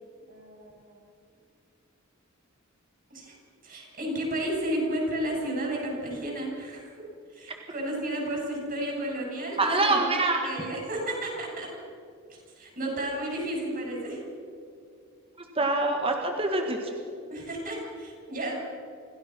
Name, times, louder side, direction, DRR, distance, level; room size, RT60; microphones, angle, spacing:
voice 1, 0.3-1.0 3.1-3.4 3.6-6.9 7.3-10.1 10.4-11.7 12.6-14.2 17.3-18.5, right 1 dB, 45° right, -1 dB, 7.6 m, -32 dB
voice 2, 9.6-10.5 15.6-16.9, right 2 dB, 25° right, 3 dB, 1.8 m, -25 dB
26.5 x 16.5 x 6.2 m, 2.4 s
head